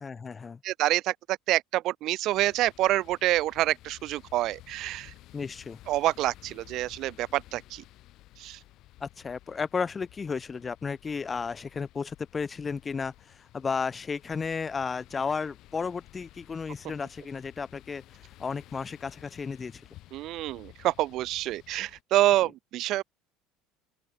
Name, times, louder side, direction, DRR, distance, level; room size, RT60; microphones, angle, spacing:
voice 1, 0.0-0.6 5.3-5.8 9.0-18.0 18.4-19.8, left 5 dB, 25° left, 1.6 m, -33 dB
voice 2, 0.6-5.1 5.9-7.8 8.4-8.6 20.1-23.0, right 15 dB, 60° right, 1.1 m, -27 dB
sound 1, 2.3-22.0, left 16 dB, 60° left, 5.5 m, -54 dB
open air
hypercardioid pair, 85°, 0 cm